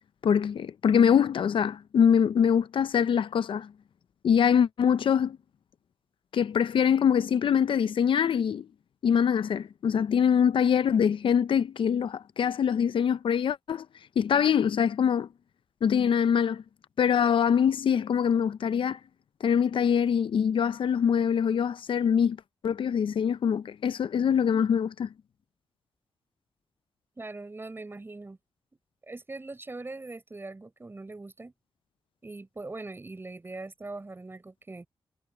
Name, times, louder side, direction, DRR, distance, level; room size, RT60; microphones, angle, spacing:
voice 1, 0.2-3.7 4.2-5.4 6.3-8.7 9.0-13.9 14.2-15.3 15.8-16.6 17.0-19.0 19.4-22.4 22.6-25.1, left 8 dB, 65° left, 0.6 m, -24 dB
voice 2, 27.2-28.4 29.1-31.5 32.2-34.9, right 2 dB, 25° right, 6.6 m, -41 dB
wide cardioid pair, 100°, 9 cm